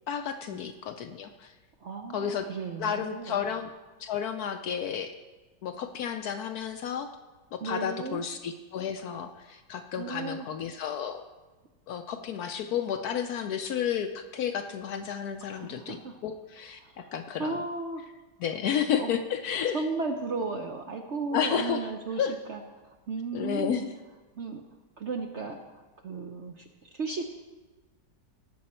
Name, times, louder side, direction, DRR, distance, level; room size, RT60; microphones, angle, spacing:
voice 1, 0.1-1.5 2.1-2.5 2.8-3.7 4.0-5.1 5.6-7.1 7.5-11.2 11.9-16.0 16.2-17.6 18.4-19.8 21.3-21.8 22.2-22.3 23.3-23.9, left 8 dB, 70° left, 7 dB, 1.0 m, -31 dB
voice 2, 1.8-3.4 7.6-8.2 10.0-10.5 15.5-16.2 16.8-17.1 17.4-18.0 19.0-19.1 19.7-22.6 23.1-23.9 24.3-24.6 25.0-27.4, right 4 dB, 55° right, 3 dB, 0.8 m, -35 dB
18.0 x 6.3 x 4.3 m, 1.2 s
omnidirectional pair, 2.0 m